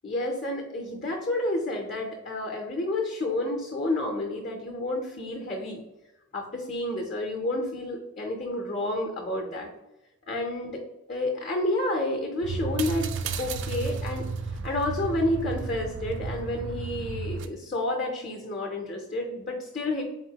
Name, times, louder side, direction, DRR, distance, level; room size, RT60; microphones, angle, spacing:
voice 1, 0.0-5.8 6.3-9.7 10.3-10.8 11.1-13.1 13.4-14.3 14.6-20.0, left 1 dB, 40° left, 1 dB, 0.5 m, -30 dB
sound 1, 12.4-17.5, right 4 dB, 60° right, 0.3 m, -33 dB
3.8 x 3.6 x 2.8 m, 0.93 s
head